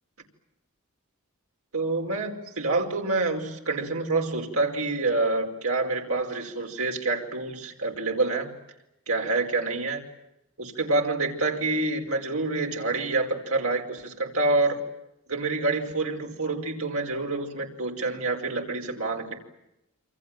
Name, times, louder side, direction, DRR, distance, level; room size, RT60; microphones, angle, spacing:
voice 1, 1.7-8.5 9.1-10.0 10.6-14.8 15.3-19.4, right 3 dB, 90° right, 2 dB, 5.0 m, -27 dB
28.0 x 26.5 x 7.7 m, 0.88 s
head